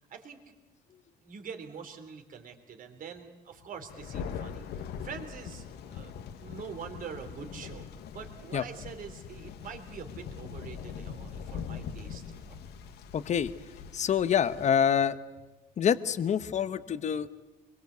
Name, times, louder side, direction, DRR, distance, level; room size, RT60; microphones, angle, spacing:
voice 1, 0.1-0.4 1.2-7.9 8.1-12.6, right 6 dB, 55° right, 5 dB, 3.5 m, -45 dB
Thunder, 3.9-14.7, left 7 dB, 75° left, 1.5 m, -42 dB
voice 2, 13.1-13.5 13.9-15.2 15.8-17.3, left 8 dB, 45° left, 13 dB, 1.1 m, -26 dB
24.5 x 22.5 x 8.3 m, 1.2 s
cardioid pair, 110°, 17 cm